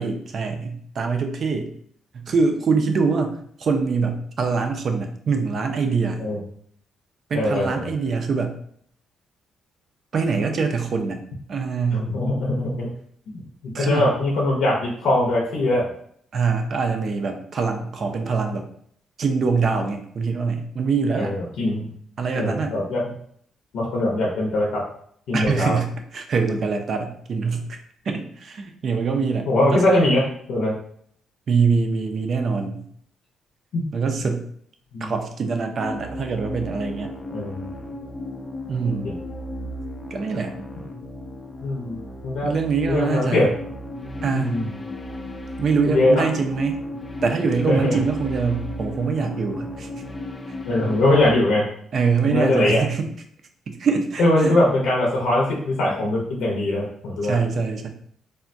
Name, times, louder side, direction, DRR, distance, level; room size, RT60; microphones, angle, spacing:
voice 1, 0.0-1.7 2.1-6.3 7.3-8.5 10.1-11.2 11.5-12.1 13.7-14.1 16.3-18.7 19.2-21.3 22.2-22.8 25.3-27.8 28.1-29.9 31.5-32.8 33.9-34.4 35.0-37.1 38.7-39.1 40.1-40.5 42.4-43.5 44.2-44.6 45.6-46.8 47.2-49.9 51.9-53.1 53.7-54.6 57.2-57.9, right 5 dB, 55° right, 5 dB, 0.4 m, -24 dB
voice 2, 7.3-7.9 11.9-12.9 13.3-13.4 13.8-15.9 21.2-21.9 22.3-23.0 23.7-24.8 25.3-25.8 29.5-30.2 30.5-30.7 33.7-33.8 34.9-35.1 37.3-37.6 39.0-39.2 41.6-42.0 42.2-42.5 42.9-43.5 44.3-44.7 45.9-46.2 47.7-48.0 50.7-51.6 52.2-52.8 54.2-57.4, left 1 dB, 75° left, -3 dB, 0.6 m, -21 dB
sound 1, 35.8-51.3, left 1 dB, 20° left, 0.4 m, -35 dB
3.4 x 2.1 x 2.5 m, 0.64 s
cardioid pair, 90°, 0 cm